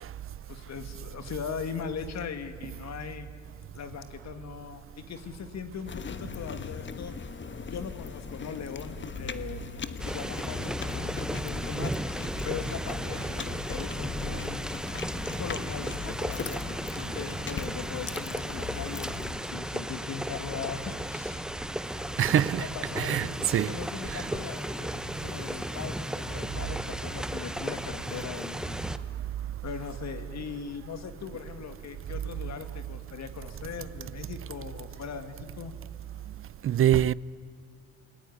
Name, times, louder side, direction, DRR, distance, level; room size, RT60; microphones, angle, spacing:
voice 1, 0.5-3.3 3.7-7.1 7.7-11.9 12.4-14.6 15.4-21.5 22.6-28.8 29.6-35.7, left 6 dB, 60° left, 2.3 m, -39 dB
sound 1, 5.9-19.3, left 6 dB, 40° left, 1.3 m, -39 dB
sound 2, 10.0-29.0, equal, ahead, 1.0 m, -35 dB
voice 2, 22.2-22.7 23.0-23.8 24.1-24.3 36.6-37.1, right 11 dB, 45° right, 0.6 m, -24 dB
28.5 x 19.5 x 9.8 m
cardioid pair, 90°, 30 cm